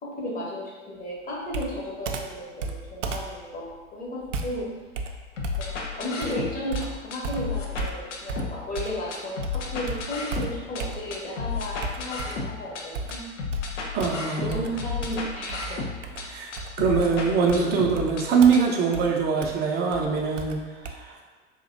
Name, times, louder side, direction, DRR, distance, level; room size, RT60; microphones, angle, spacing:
voice 1, 0.0-3.6 3.9-4.7 5.6-12.2 12.5-13.2 14.4-15.8, left 1 dB, 25° left, -4 dB, 1.0 m, -34 dB
Computer keyboard, 1.5-9.1 9.4-11.3 11.8-12.6 12.9-20.9, right 3 dB, 75° right, 0.5 m, -36 dB
sound 1, 5.4-6.8 7.1-8.8 9.1-10.8 11.1-12.8 13.1-16.2 16.5-18.2 18.5-18.6, left 5 dB, 80° left, 0.6 m, -32 dB
voice 2, 13.9-14.6 16.2-16.5 16.8-20.6 21.0-21.1, right 5 dB, 25° right, 0 dB, 0.6 m, -22 dB
4.3 x 2.8 x 2.6 m, 1.4 s
figure-of-eight pair, 80°, 37 cm